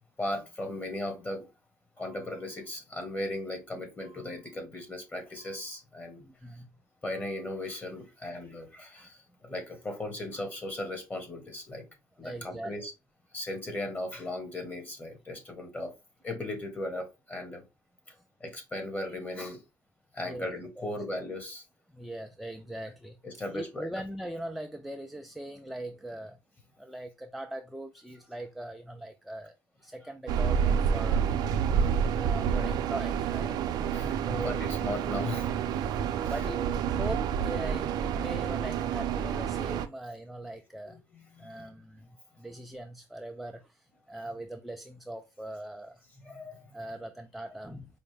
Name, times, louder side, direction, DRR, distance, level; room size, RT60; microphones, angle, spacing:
voice 1, 0.2-1.5 2.0-6.2 7.0-11.8 12.2-12.9 13.3-15.9 16.2-17.6 18.4-19.6 20.1-21.6 23.2-23.9 33.9-35.5 36.2-36.3 38.1-38.2 40.8-41.7 44.1-44.3 46.2-46.7, left 1 dB, 20° left, 1.6 m, -37 dB
voice 2, 6.2-6.7 12.2-12.7 20.2-20.5 20.8-20.9 21.9-23.2 23.5-26.4 26.8-29.5 29.8-31.4 32.1-33.6 34.3-34.6 35.8-35.9 36.3-36.6 37.0-41.0 41.4-42.1 42.4-43.6 44.1-46.0 46.7-47.9, right 1 dB, ahead, 0.3 m, -40 dB
sound 1, 30.3-39.9, right 7 dB, 65° right, 0.5 m, -29 dB
5.0 x 2.1 x 3.4 m
supercardioid pair, 95°, 8 cm